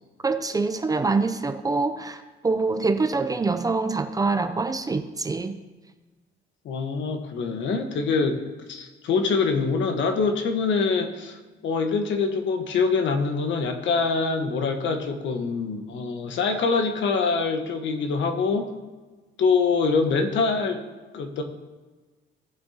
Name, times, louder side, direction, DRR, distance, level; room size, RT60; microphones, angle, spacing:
voice 1, 0.2-5.6, right 3 dB, 20° right, 8 dB, 0.5 m, -25 dB
voice 2, 6.6-8.4 8.7-18.7 19.4-20.8 21.1-21.4, left 4 dB, 70° left, 6 dB, 1.3 m, -24 dB
18.0 x 7.4 x 2.9 m, 1.3 s
cardioid pair, 145°, 20 cm